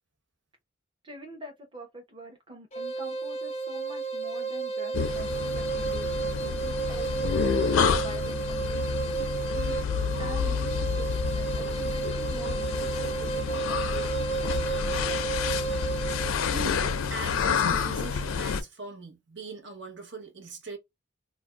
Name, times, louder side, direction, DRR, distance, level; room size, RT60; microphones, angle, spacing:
voice 1, 1.0-9.1 9.5-9.8 10.2-14.1, equal, 25° right, 0.8 m, -45 dB
sound 1, 2.7-16.4, right 5 dB, 30° left, 0.5 m, -32 dB
sound 2, 4.9-18.6, left 6 dB, 90° left, 0.4 m, -29 dB
voice 2, 16.5-20.8, right 3 dB, 60° right, 0.9 m, -40 dB
2.5 x 2.1 x 3.2 m
head